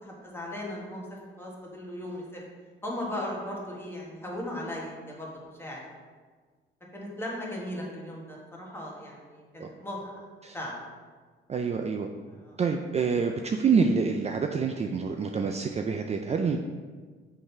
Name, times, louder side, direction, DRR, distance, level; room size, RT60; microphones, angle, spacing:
voice 1, 0.0-2.4 2.8-5.3 5.6-5.9 6.9-10.2 10.5-10.8 12.3-12.6, left 1 dB, 10° left, -3 dB, 1.7 m, -37 dB
voice 2, 11.5-12.1 12.6-16.6, right 5 dB, 35° right, 4 dB, 0.4 m, -27 dB
6.3 x 3.9 x 4.6 m, 1.5 s
cardioid pair, 90°, 20 cm